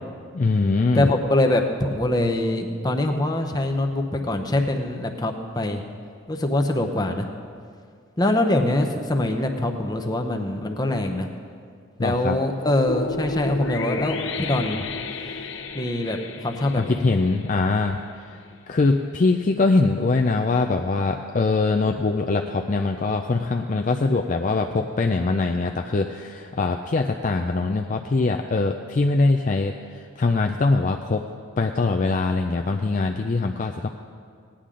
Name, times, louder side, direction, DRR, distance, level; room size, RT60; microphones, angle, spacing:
voice 1, 0.3-1.1 12.0-12.4 16.7-18.0 18.3-18.4 18.7-31.2 31.6-33.9, left 3 dB, 40° left, 3 dB, 0.4 m, -22 dB
voice 2, 0.9-5.8 6.3-7.3 8.2-11.3 12.0-14.9 15.7-16.2 16.4-17.0, left 1 dB, 20° left, 3 dB, 0.7 m, -23 dB
sound 1, 12.9-18.0, left 3 dB, 65° left, 0.7 m, -33 dB
17.5 x 10.0 x 3.8 m, 2.2 s
head